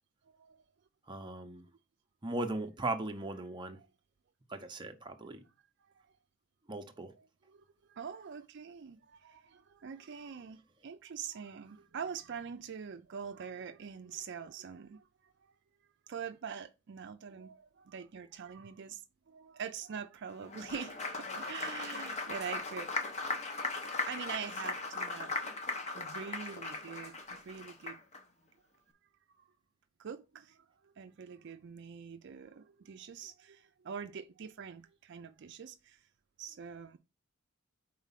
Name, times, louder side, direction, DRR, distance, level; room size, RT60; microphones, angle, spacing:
voice 1, 0.3-0.6 5.8-6.1 7.5-15.3 16.1-22.9 23.6-25.5 25.9-28.0 29.4-29.5 30.0-36.0 36.4-37.0, right 7 dB, 60° right, 0.4 m, -44 dB
voice 2, 1.1-1.7 2.2-3.8 4.5-5.4 6.7-7.1, right 2 dB, 20° right, 0.7 m, -38 dB
Applause, 20.4-28.2, left 3 dB, 35° left, 0.9 m, -38 dB
4.7 x 4.0 x 5.7 m
head